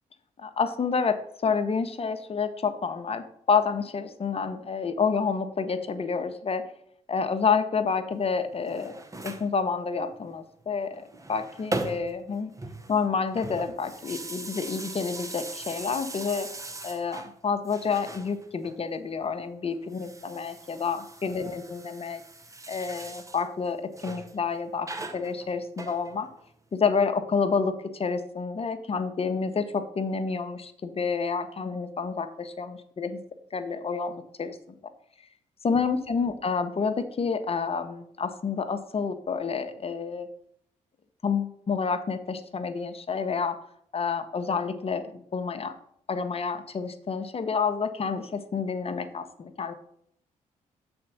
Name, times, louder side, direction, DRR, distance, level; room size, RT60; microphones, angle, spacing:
voice 1, 0.4-6.7 7.1-9.0 9.2-11.0 11.3-12.5 12.9-16.5 16.8-22.2 22.7-26.3 26.7-33.2 33.5-34.6 35.6-40.3 41.2-43.6 43.9-45.7 46.1-49.7, left 5 dB, 40° left, 9 dB, 0.9 m, -29 dB
sound 1, 8.5-9.5 10.9-12.3 12.5-17.3 17.6-18.8 19.8-23.5 23.9-24.3 24.8-26.5, right 2 dB, 20° right, 0.9 m, -39 dB
6.6 x 4.3 x 5.9 m, 0.69 s
supercardioid pair, 55°, 15 cm